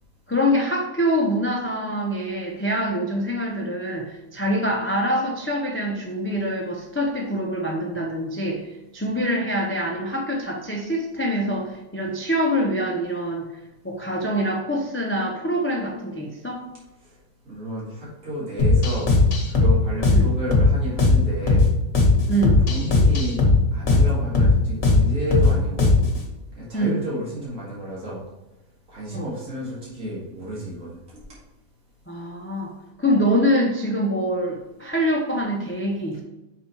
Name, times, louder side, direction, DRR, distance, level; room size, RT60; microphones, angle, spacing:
voice 1, 0.3-13.5 13.8-16.7 20.1-20.3 22.3-22.7 26.7-27.0 29.1-29.3 32.1-32.7 33.0-36.2, equal, 15° left, 0 dB, 0.4 m, -25 dB
voice 2, 17.4-19.1 19.5-21.6 22.7-23.4 23.7-25.9 26.6-28.2 28.9-31.0, equal, 65° right, -7 dB, 2.6 m, -31 dB
sound 1, 18.6-26.2, left 3 dB, 55° left, 1.5 m, -18 dB
5.9 x 4.0 x 4.5 m, 1.0 s
omnidirectional pair, 1.5 m